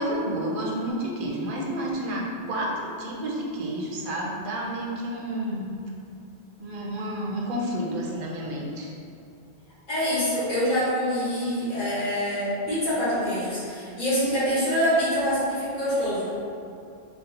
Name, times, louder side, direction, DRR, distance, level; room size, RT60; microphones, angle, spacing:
voice 1, 0.0-5.8 6.6-8.9, right 1 dB, 60° right, -3 dB, 0.7 m, -30 dB
voice 2, 9.9-16.3, equal, 50° left, -10 dB, 1.4 m, -25 dB
4.0 x 2.0 x 2.8 m, 2.5 s
omnidirectional pair, 1.1 m